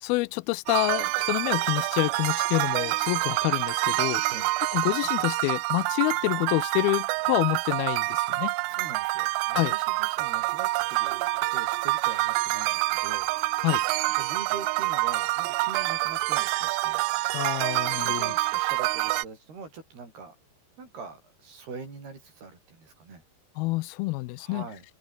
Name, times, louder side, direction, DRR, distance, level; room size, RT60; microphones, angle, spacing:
voice 1, 0.0-4.2 4.7-8.5 9.6-9.7 13.6-13.8 17.3-18.3 23.6-24.6, left 22 dB, 85° left, 2.2 m, -27 dB
sound 1, 0.7-19.2, right 23 dB, 85° right, 2.1 m, -27 dB
voice 2, 8.7-13.3 14.1-17.0 18.0-20.3 20.8-23.2 24.4-24.8, right 4 dB, 65° right, 9.9 m, -43 dB
open air
omnidirectional pair, 4.9 m